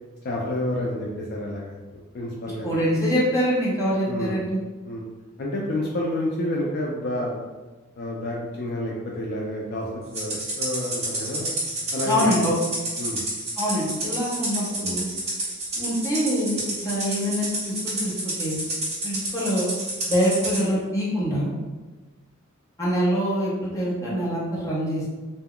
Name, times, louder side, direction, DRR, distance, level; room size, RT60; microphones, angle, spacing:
voice 1, 0.2-1.7 2.1-2.7 4.1-4.3 4.9-5.0 5.4-7.3 8.0-11.5 11.9-12.5 13.0-13.2, left 1 dB, 45° left, -3 dB, 0.3 m, -29 dB
voice 2, 2.6-4.6 12.0-12.5 13.6-15.1 15.7-18.6 19.0-19.7 20.1-21.5 22.8-25.1, equal, 15° left, -8 dB, 0.7 m, -24 dB
Rattle (instrument), 10.1-20.6, right 1 dB, 30° right, 0.9 m, -29 dB
2.2 x 2.0 x 3.6 m, 1.3 s
head